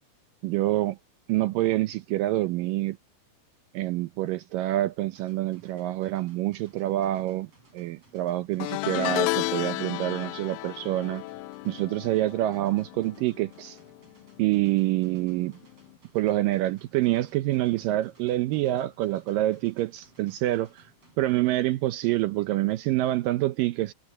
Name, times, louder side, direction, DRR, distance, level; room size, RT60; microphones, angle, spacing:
voice 1, 0.4-1.0 1.3-3.0 3.7-7.5 7.7-11.2 11.7-13.8 14.4-15.6 16.1-20.8 21.2-23.9, right 15 dB, 75° right, 2.2 m, -26 dB
sound 1, 5.2-21.2, right 2 dB, 40° right, 8.8 m, -60 dB
sound 2, 8.6-14.0 14.3-14.6 15.9-16.0, left 19 dB, 80° left, 2.2 m, -32 dB
omnidirectional pair, 4.4 m